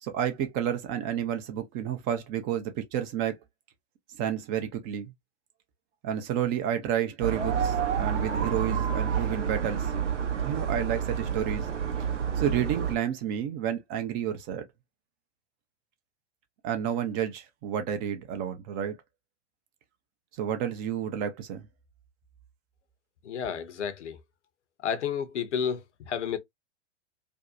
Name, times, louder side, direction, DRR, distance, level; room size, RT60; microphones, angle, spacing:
voice 1, 0.0-3.4 4.2-5.1 6.0-9.9 10.4-11.7 12.4-14.7 16.6-19.0 20.3-21.7, right 9 dB, 25° right, 0.4 m, -30 dB
sound 1, 7.2-12.9, right 7 dB, 75° right, 0.7 m, -29 dB
voice 2, 23.2-24.2 24.8-26.4, left 7 dB, 70° left, 0.7 m, -31 dB
2.6 x 2.1 x 2.3 m
figure-of-eight pair, 100°, 36 cm